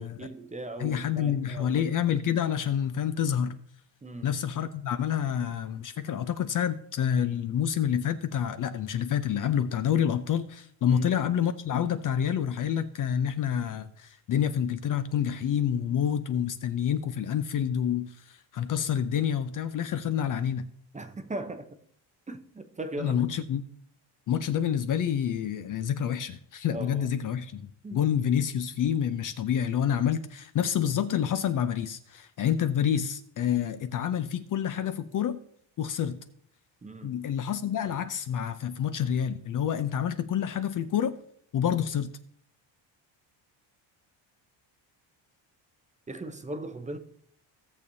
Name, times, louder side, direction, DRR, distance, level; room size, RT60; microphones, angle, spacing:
voice 1, 0.0-1.7 4.0-4.3 10.8-11.1 20.9-21.7 22.3-23.2 26.7-27.1 27.8-28.1 36.8-37.2 46.1-47.0, right 2 dB, 15° right, 0.7 m, -38 dB
voice 2, 0.8-3.6 4.2-20.7 23.0-23.6 24.3-35.4 35.8-36.2 37.0-41.2 41.5-42.1, left 9 dB, 45° left, 0.5 m, -28 dB
16.5 x 6.9 x 2.7 m
cardioid pair, 130°, 47 cm